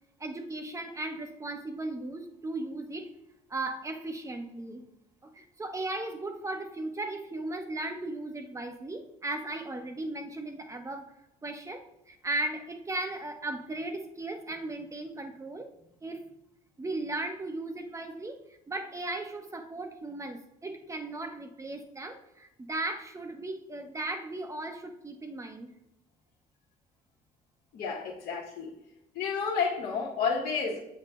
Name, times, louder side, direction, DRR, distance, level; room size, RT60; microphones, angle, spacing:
voice 1, 0.2-3.1 3.5-4.8 5.2-11.1 11.4-15.7 16.0-16.2 16.8-25.7, right 2 dB, 20° right, 5 dB, 0.9 m, -36 dB
voice 2, 27.7-28.7 29.1-30.8, left 5 dB, 65° left, -6 dB, 1.5 m, -30 dB
8.0 x 7.6 x 2.5 m, 0.88 s
cardioid pair, 110°, 17 cm